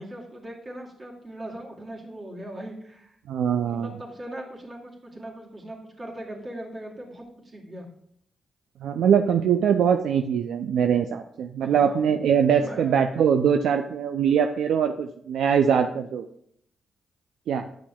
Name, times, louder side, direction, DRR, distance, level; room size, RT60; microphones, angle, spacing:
voice 1, 0.0-3.1 3.6-7.9 11.6-12.0 12.6-13.0, right 1 dB, 40° right, -2 dB, 2.3 m, -39 dB
voice 2, 3.3-3.9 8.8-16.2 17.5-17.6, right 7 dB, 75° right, 5 dB, 0.3 m, -22 dB
9.9 x 5.8 x 2.3 m, 0.70 s
supercardioid pair, 45°, 0 cm